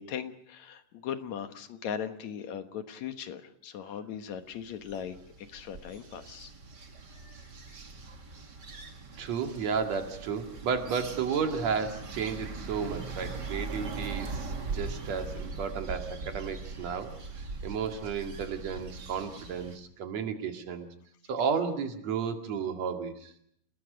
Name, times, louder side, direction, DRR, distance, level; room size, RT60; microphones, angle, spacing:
voice 1, 0.0-6.5 7.7-7.8, left 8 dB, 65° left, 9 dB, 2.4 m, -39 dB
sound 1, 4.5-19.8, right 4 dB, 35° right, 2.4 m, -41 dB
voice 2, 9.2-17.1 17.6-20.9 21.3-23.3, right 6 dB, 55° right, 5 dB, 3.2 m, -33 dB
29.5 x 20.0 x 5.1 m, 0.68 s
omnidirectional pair, 3.8 m